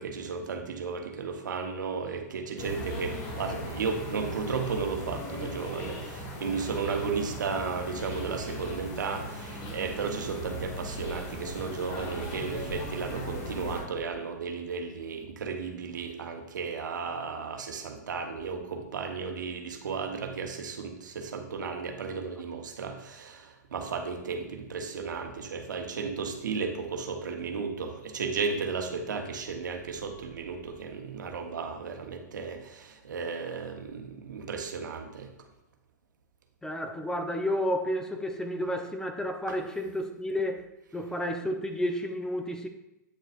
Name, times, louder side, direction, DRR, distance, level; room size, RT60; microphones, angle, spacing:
voice 1, 0.0-35.3 39.5-39.6, right 5 dB, 85° right, 4 dB, 1.1 m, -34 dB
sound 1, 2.6-13.8, equal, 45° left, 2.3 m, -38 dB
voice 2, 36.6-40.7 40.9-42.7, equal, 5° left, 5 dB, 0.6 m, -31 dB
8.7 x 6.5 x 2.5 m, 0.92 s
hypercardioid pair, 120°, 10 cm